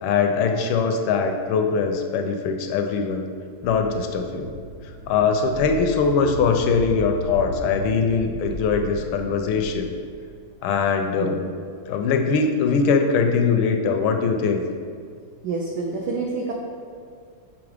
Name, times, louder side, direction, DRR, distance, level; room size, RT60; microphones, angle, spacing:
voice 1, 0.0-3.2 3.6-4.5 5.1-9.9 10.6-11.4 11.9-14.6, left 5 dB, 75° left, 5 dB, 1.3 m, -22 dB
sound 1, 3.6-10.7, right 1 dB, 50° right, 0.9 m, -36 dB
voice 2, 11.2-11.5 15.4-16.5, right 3 dB, 80° right, 0 dB, 0.8 m, -28 dB
5.9 x 3.7 x 4.9 m, 2.1 s
omnidirectional pair, 2.3 m